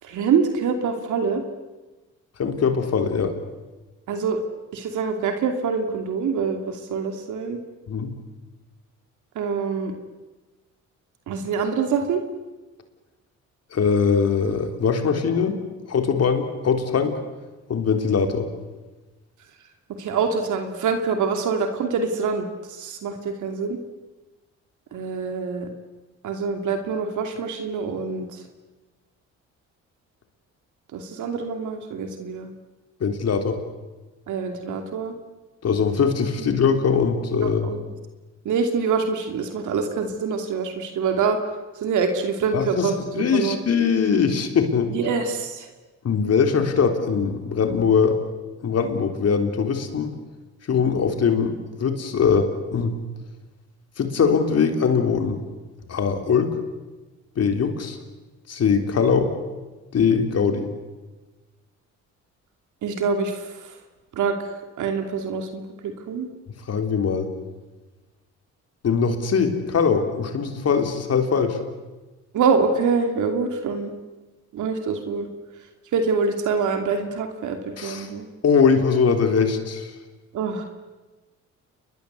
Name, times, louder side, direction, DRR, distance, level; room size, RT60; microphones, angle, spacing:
voice 1, 0.0-1.4 4.1-4.4 4.7-7.6 9.3-9.9 11.3-12.2 19.9-23.8 24.9-25.7 26.2-28.4 30.9-32.5 34.3-35.1 37.4-37.8 38.4-41.4 41.8-43.6 44.9-45.7 62.8-63.8 64.1-64.5 64.8-66.3 72.3-73.9 74.5-75.3 75.9-78.3 80.3-80.6, right 5 dB, 75° right, 5 dB, 2.8 m, -25 dB
voice 2, 2.4-3.3 7.9-8.1 13.7-15.6 15.9-17.2 17.7-18.5 33.0-33.6 35.6-37.7 42.5-44.9 46.0-48.2 48.6-50.1 50.7-52.9 54.0-55.4 55.9-56.5 57.4-58.0 58.5-59.3 59.9-60.7 66.7-67.3 68.8-71.6 77.8-78.1 78.4-79.9, left 6 dB, 55° left, 6 dB, 3.8 m, -21 dB
29.0 x 22.0 x 8.2 m, 1.2 s
cardioid pair, 90°, 30 cm